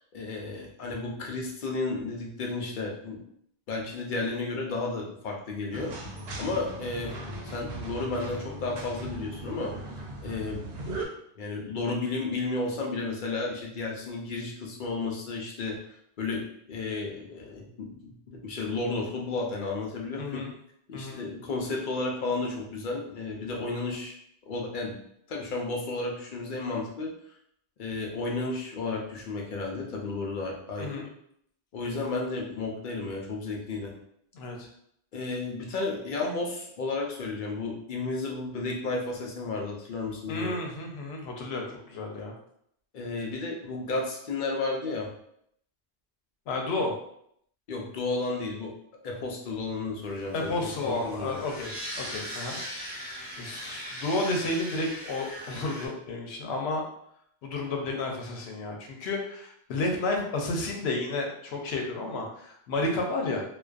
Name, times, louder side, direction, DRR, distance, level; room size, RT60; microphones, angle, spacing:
voice 1, 0.1-3.2 3.7-5.9 6.4-7.1 7.4-9.7 10.2-10.6 11.4-15.8 16.2-20.4 20.9-24.1 24.5-25.0 25.3-27.1 27.8-31.0 31.7-33.9 35.1-40.5 42.9-45.1 47.7-48.7 49.0-50.5 50.8-51.4, left 3 dB, 60° left, -1 dB, 0.6 m, -32 dB
sound 1, 5.7-11.1, right 1 dB, 75° right, 0.8 m, -38 dB
voice 2, 20.2-20.5 20.9-21.2 30.8-31.1 34.3-34.7 40.3-42.3 46.5-46.9 50.3-56.8 57.4-63.4, left 2 dB, 90° left, 1 dB, 0.8 m, -32 dB
sound 2, 50.0-55.9, equal, 15° left, 1.0 m, -40 dB
2.4 x 2.2 x 2.3 m, 0.71 s
omnidirectional pair, 1.0 m